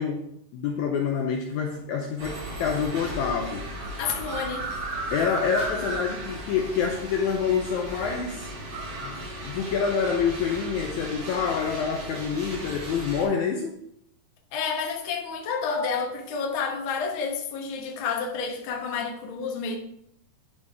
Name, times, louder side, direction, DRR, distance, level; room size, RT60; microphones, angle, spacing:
voice 1, 0.0-3.7 5.1-8.5 8.9-13.7, left 6 dB, 75° left, 1.8 m, -27 dB
sound 1, 2.2-13.3, right 1 dB, 70° right, 4.1 m, -35 dB
voice 2, 4.0-4.7 14.5-19.8, left 5 dB, 60° left, 1.4 m, -30 dB
10.0 x 4.3 x 3.5 m
omnidirectional pair, 3.8 m